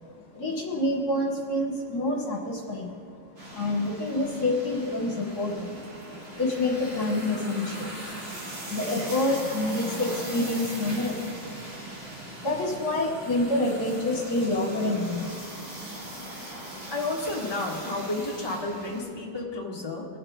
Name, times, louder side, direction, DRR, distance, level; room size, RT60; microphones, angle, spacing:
voice 1, 0.3-3.0 3.2-5.8 6.4-8.0 8.4-11.6 12.1-15.4 16.0-16.2, left 2 dB, 55° left, -1 dB, 1.8 m, -28 dB
sound 1, 3.4-19.0, right 1 dB, 65° right, 3.7 m, -40 dB
voice 2, 16.9-20.1, left 2 dB, 15° left, -3 dB, 1.7 m, -31 dB
22.5 x 8.0 x 4.0 m, 2.3 s
omnidirectional pair, 2.1 m